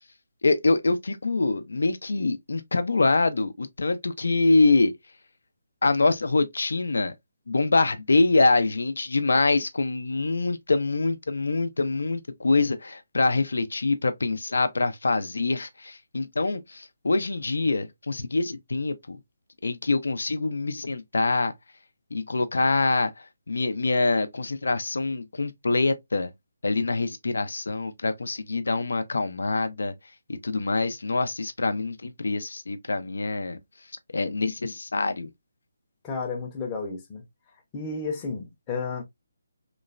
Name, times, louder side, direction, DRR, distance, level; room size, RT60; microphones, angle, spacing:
voice 1, 0.4-4.9 5.8-7.1 7.5-19.2 19.6-21.5 22.1-23.1 23.5-26.3 26.6-29.9 30.4-33.6 34.1-35.3, left 3 dB, 85° left, 0.5 m, -25 dB
voice 2, 36.0-37.2 37.7-39.0, left 4 dB, 15° left, 0.5 m, -32 dB
3.0 x 2.0 x 2.4 m
hypercardioid pair, 175°, 0 cm